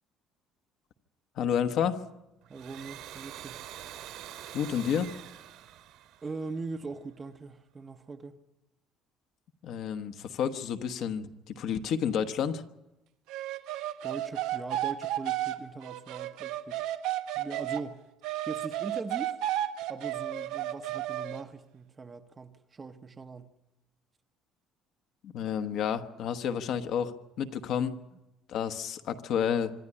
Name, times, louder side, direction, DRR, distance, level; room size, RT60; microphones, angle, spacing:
voice 1, 1.4-2.0 4.5-5.1 9.6-12.6 25.2-28.0 28.5-29.7, left 8 dB, 50° left, 1.1 m, -30 dB
Domestic sounds home sounds, 2.4-6.9, right 11 dB, 70° right, 2.0 m, -45 dB
voice 2, 2.5-3.7 6.2-8.4 14.0-16.9 17.3-18.1 18.5-19.4 19.9-23.5, right 4 dB, 20° right, 0.8 m, -41 dB
sound 1, 13.3-17.8 18.2-21.4, right 13 dB, 85° right, 1.2 m, -33 dB
25.5 x 11.0 x 9.8 m
cardioid pair, 170°, 0 cm